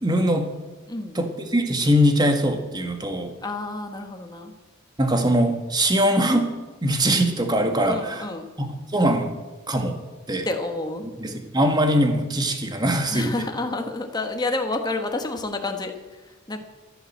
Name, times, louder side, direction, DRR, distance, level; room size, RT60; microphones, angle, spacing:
voice 1, 0.0-0.5 1.2-3.3 5.0-6.6 6.8-8.3 8.6-9.3 9.7-10.0 10.3-10.5 11.2-13.3, equal, 20° right, 5 dB, 1.8 m, -22 dB
voice 2, 0.9-1.2 3.4-4.5 7.8-8.5 10.4-11.0 13.1-16.6, left 2 dB, 20° left, 4 dB, 1.4 m, -29 dB
13.5 x 12.0 x 7.4 m, 1.2 s
head